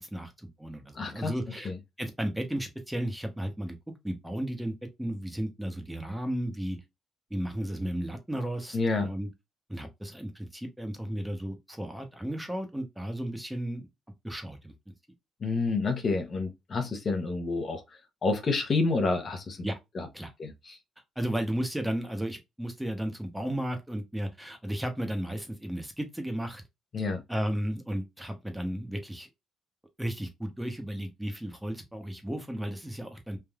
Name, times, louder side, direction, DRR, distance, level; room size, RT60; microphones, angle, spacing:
voice 1, 0.0-1.7 2.0-3.8 4.0-6.8 7.3-9.3 9.7-13.8 14.2-14.7 19.6-19.8 20.1-20.3 21.2-26.6 27.3-29.3 30.0-33.4, right 1 dB, 5° right, 0.9 m, -34 dB
voice 2, 0.9-1.3 1.6-1.7 8.7-9.1 15.4-17.8 18.2-19.6 19.9-20.1 20.4-20.8 26.9-27.2, left 3 dB, 45° left, 0.8 m, -29 dB
3.3 x 2.6 x 2.2 m
cardioid pair, 90°, 0 cm